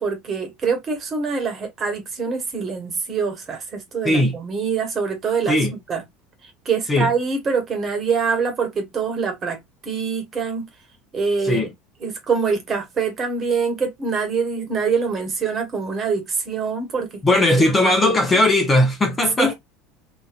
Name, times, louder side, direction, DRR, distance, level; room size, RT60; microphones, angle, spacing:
voice 1, 0.0-6.0 6.4-10.7 11.1-11.7 12.0-18.4 19.4-19.5, right 5 dB, 35° right, 1.3 m, -25 dB
voice 2, 17.2-19.5, left 1 dB, 20° left, 0.8 m, -18 dB
2.9 x 2.6 x 2.5 m
supercardioid pair, 110°, 0 cm